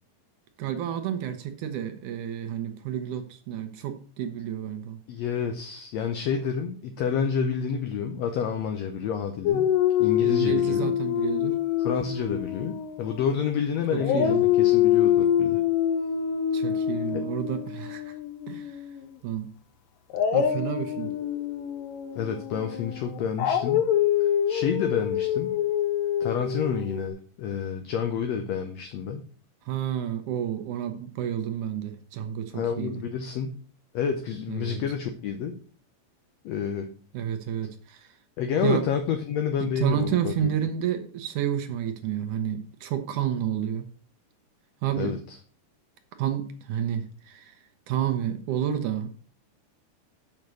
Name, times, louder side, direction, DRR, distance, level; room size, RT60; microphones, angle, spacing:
voice 1, 0.6-5.0 10.2-11.6 13.9-14.4 16.5-18.1 18.5-18.8 19.2-19.5 20.3-21.1 29.7-33.0 34.5-34.8 37.1-38.1 38.6-38.9 39.6-43.9 44.8-45.2 46.2-47.5 47.9-49.1, right 10 dB, 75° right, 7 dB, 2.2 m, -30 dB
voice 2, 5.1-9.7 10.0-10.9 11.8-15.6 17.1-17.3 22.1-23.9 24.5-25.5 26.2-29.3 32.5-33.6 33.9-35.5 36.5-36.9 38.4-40.5 45.0-45.4, left 7 dB, 70° left, 6 dB, 1.7 m, -29 dB
Dog, 9.5-13.6 14.0-19.0 20.1-27.1, left 10 dB, 90° left, 2.4 m, -25 dB
6.8 x 6.0 x 6.2 m, 0.42 s
omnidirectional pair, 3.8 m